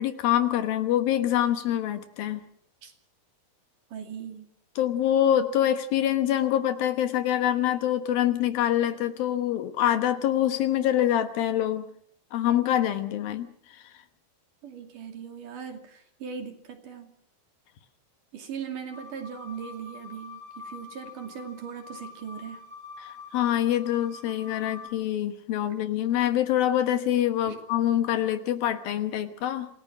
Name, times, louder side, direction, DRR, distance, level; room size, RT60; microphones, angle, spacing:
voice 1, 0.0-2.4 4.8-11.9 12.3-13.8 23.0-29.7, left 11 dB, 70° left, 9 dB, 2.9 m, -25 dB
voice 2, 3.9-4.5 14.6-17.2 18.3-22.6 27.5-27.6, right 7 dB, 55° right, 4 dB, 3.9 m, -39 dB
sound 1, 18.9-24.9, left 4 dB, 15° right, 7.4 m, -45 dB
27.0 x 19.0 x 6.2 m, 0.64 s
omnidirectional pair, 4.7 m